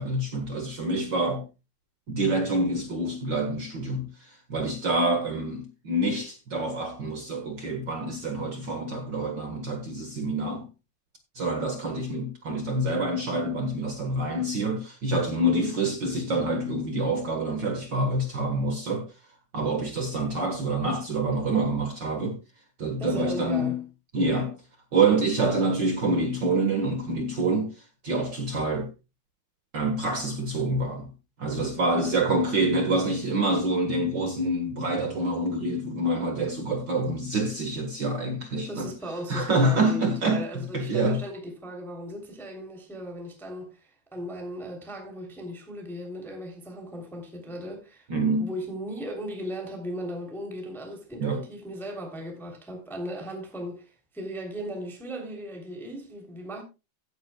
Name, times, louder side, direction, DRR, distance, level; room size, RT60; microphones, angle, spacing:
voice 1, 0.0-1.4 2.1-10.6 11.3-19.0 19.5-22.4 22.8-23.8 24.1-24.5 24.9-27.7 28.0-28.9 29.7-31.1 31.4-38.9 39.3-41.2 48.1-48.5 51.2-51.4, right 2 dB, 70° right, 1.0 m, -26 dB
voice 2, 15.5-15.8 23.0-23.8 31.8-32.1 38.7-48.1 48.4-56.6, equal, ahead, 2.4 m, -37 dB
16.0 x 9.7 x 2.3 m
omnidirectional pair, 4.4 m